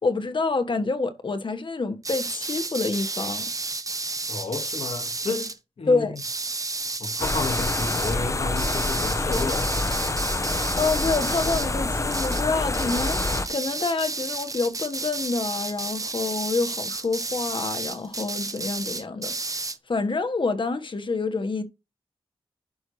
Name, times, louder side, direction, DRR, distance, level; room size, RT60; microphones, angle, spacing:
voice 1, 0.0-3.5 5.9-6.2 10.5-21.6, left 3 dB, 55° left, 1.4 m, -27 dB
sound 1, 2.0-5.6 6.2-8.2 8.6-11.8 12.1-12.5 12.7-19.8, right 3 dB, 35° right, 0.9 m, -32 dB
voice 2, 4.3-6.2 7.0-9.7, left 3 dB, 75° left, 1.7 m, -32 dB
sound 2, 7.2-13.5, left 2 dB, 30° left, 0.9 m, -27 dB
11.5 x 5.5 x 3.2 m
cardioid pair, 55°, 10 cm